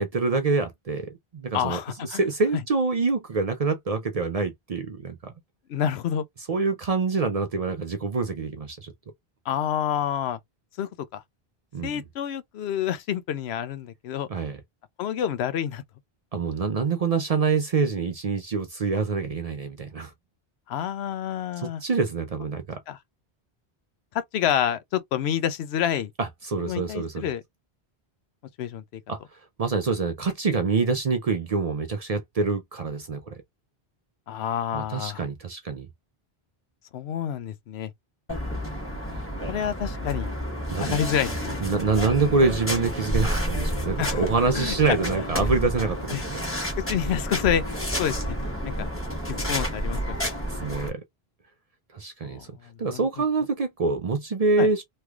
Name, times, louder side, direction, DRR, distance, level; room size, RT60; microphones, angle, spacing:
voice 1, 0.0-5.3 6.5-8.9 11.7-12.0 14.3-14.6 16.3-20.1 21.6-22.8 26.2-27.2 29.1-33.4 34.7-35.9 40.7-41.0 41.6-46.4 50.5-51.0 51.9-52.5 52.8-54.8, right 4 dB, 45° right, 0.5 m, -26 dB
voice 2, 1.5-2.2 5.7-6.2 9.5-10.4 10.8-11.2 11.8-14.3 15.0-15.8 20.7-21.8 22.9-23.0 24.1-26.1 26.6-27.4 28.6-29.0 34.3-35.2 36.9-37.9 39.4-40.3 40.8-41.6 44.0-44.2 44.5-45.0 46.1-46.2 46.9-48.2 48.7-48.9 49.3-50.2 52.2-52.5 52.8-53.0 54.6-54.7, left 9 dB, 85° left, 0.8 m, -28 dB
sound 1, 38.3-50.9, equal, 15° left, 1.1 m, -30 dB
3.1 x 3.0 x 2.3 m
omnidirectional pair, 1.1 m